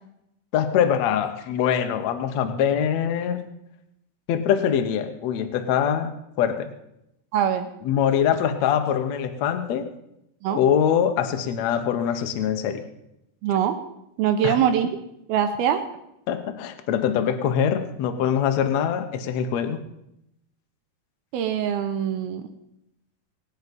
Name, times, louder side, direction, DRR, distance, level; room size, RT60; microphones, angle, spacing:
voice 1, 0.5-3.5 4.3-6.7 7.8-9.9 10.5-12.8 14.4-14.6 16.3-19.8, left 8 dB, 85° left, 7 dB, 1.5 m, -23 dB
voice 2, 7.3-7.7 10.4-10.6 13.4-13.8 14.2-14.9 15.3-15.8 21.3-22.5, right 9 dB, 75° right, 8 dB, 2.5 m, -23 dB
19.0 x 9.5 x 5.4 m, 0.82 s
omnidirectional pair, 4.8 m